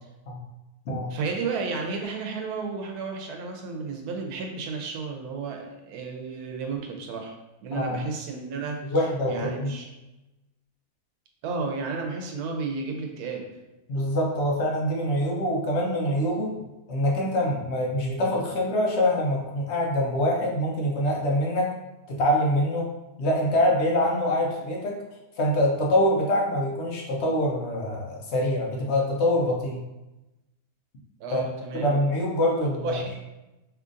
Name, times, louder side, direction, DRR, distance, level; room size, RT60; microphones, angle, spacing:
voice 1, 1.1-7.3 7.6-9.9 11.4-13.5 31.2-31.9 32.6-33.1, right 4 dB, 90° right, 2 dB, 1.1 m, -33 dB
voice 2, 7.7-8.0 8.9-9.7 13.9-16.5 16.9-21.7 22.1-22.9 23.2-25.0 25.4-29.8 31.3-31.4 31.7-33.2, left 1 dB, 60° left, -1 dB, 0.8 m, -25 dB
3.7 x 3.0 x 2.5 m, 1.0 s
omnidirectional pair, 1.6 m